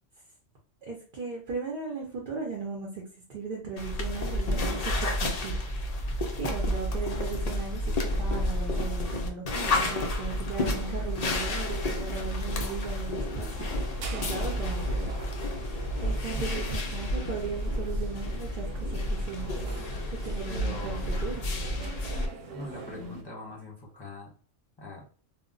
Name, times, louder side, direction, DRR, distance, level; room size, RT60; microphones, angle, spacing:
voice 1, 0.9-3.0 3.3-5.5 6.4-13.8 14.1-15.1 16.0-19.5 20.2-21.5, right 5 dB, 50° right, -2 dB, 0.7 m, -37 dB
sound 1, 3.8-22.3, left 1 dB, 75° left, 0.3 m, -30 dB
sound 2, 13.5-23.2, right 2 dB, 80° right, 0.9 m, -44 dB
voice 2, 20.4-21.1 22.5-24.3 24.8-25.1, left 2 dB, 25° left, -3 dB, 0.6 m, -41 dB
2.1 x 2.1 x 3.7 m, 0.41 s
omnidirectional pair, 1.3 m